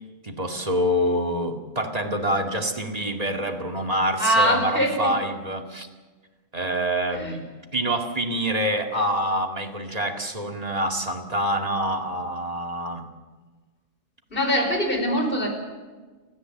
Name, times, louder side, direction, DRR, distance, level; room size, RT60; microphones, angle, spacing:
voice 1, 0.2-5.9 6.5-7.4 7.7-13.1, equal, 30° right, 3 dB, 2.3 m, -26 dB
voice 2, 4.2-5.1 7.1-7.3 14.3-15.5, equal, 50° left, 3 dB, 5.2 m, -22 dB
29.5 x 14.0 x 7.8 m, 1.3 s
omnidirectional pair, 1.2 m